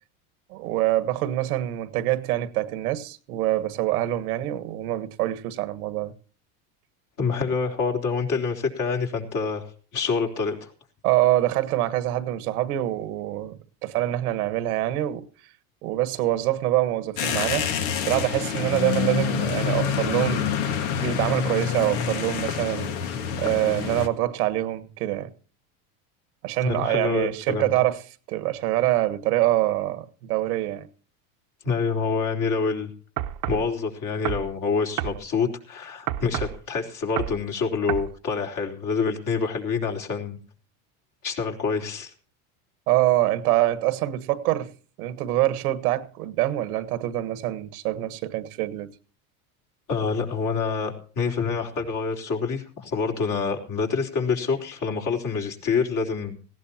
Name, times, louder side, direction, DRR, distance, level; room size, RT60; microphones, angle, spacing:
voice 1, 0.5-6.1 11.0-15.3 15.8-17.7 18.1-20.5 21.0-22.9 23.4-25.3 26.4-28.0 28.3-30.9 42.9-44.7 45.0-48.9, right 15 dB, 85° right, 1.5 m, -25 dB
voice 2, 7.2-9.7 9.9-10.7 26.6-27.7 31.6-32.9 33.5-40.4 41.2-42.1 49.9-56.4, left 5 dB, 45° left, 3.9 m, -26 dB
sound 1, 17.2-24.1, left 8 dB, 70° left, 1.8 m, -27 dB
sound 2, 33.2-33.7 34.3-34.5 35.0-35.2 36.1-36.6 37.2-37.4 37.9-38.1, right 13 dB, 50° right, 1.1 m, -29 dB
18.5 x 16.5 x 2.8 m
supercardioid pair, 115°, 43 cm